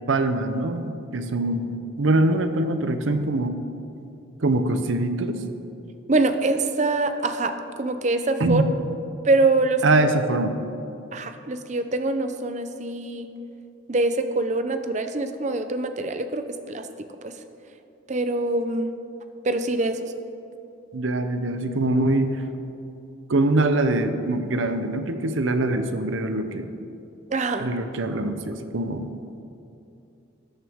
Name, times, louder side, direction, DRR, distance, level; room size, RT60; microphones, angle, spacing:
voice 1, 0.1-3.5 4.4-5.4 8.4-8.7 9.8-10.6 20.9-22.4 23.3-26.8 27.6-29.1, right 2 dB, 75° right, 8 dB, 0.7 m, -23 dB
voice 2, 6.1-7.5 7.8-8.6 9.2-10.0 11.1-13.3 13.9-16.4 16.7-17.3 18.1-18.9 19.4-20.1 27.3-27.7, right 2 dB, 35° right, 8 dB, 0.5 m, -24 dB
13.0 x 9.0 x 3.6 m, 2.8 s
head